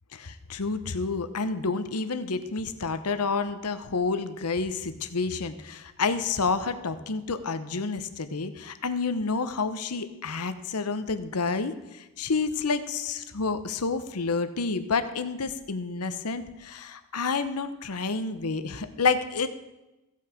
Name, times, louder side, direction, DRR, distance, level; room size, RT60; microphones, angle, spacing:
voice 1, 0.1-19.5, left 4 dB, 90° left, 11 dB, 0.9 m, -29 dB
15.0 x 8.5 x 5.1 m, 1.0 s
head